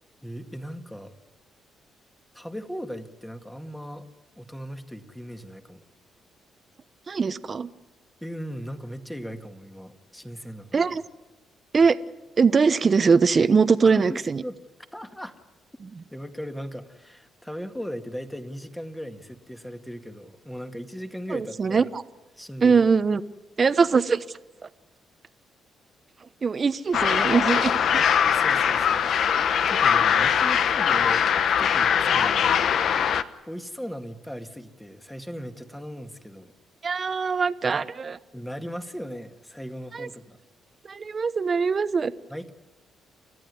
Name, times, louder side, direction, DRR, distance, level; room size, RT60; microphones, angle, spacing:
voice 1, 0.2-1.1 2.3-4.1 4.4-5.8 8.2-10.9 13.8-14.6 14.9-15.4 16.1-21.9 22.4-22.9 23.6-23.7 28.2-29.1 29.7-31.2 31.6-32.6 33.5-36.5 38.3-40.4 42.3-42.5, equal, 5° left, 6 dB, 2.0 m, -38 dB
voice 2, 7.1-7.7 10.7-11.0 11.7-12.0 12.4-14.4 15.8-15.9 21.3-22.0 22.6-23.2 23.6-24.2 26.4-28.0 36.8-38.2 39.9-40.1 40.8-42.1, right 5 dB, 40° right, 13 dB, 1.0 m, -22 dB
sound 1, 26.9-33.2, left 8 dB, 65° left, 1.0 m, -21 dB
29.5 x 14.0 x 9.6 m, 1.1 s
cardioid pair, 90°, 0 cm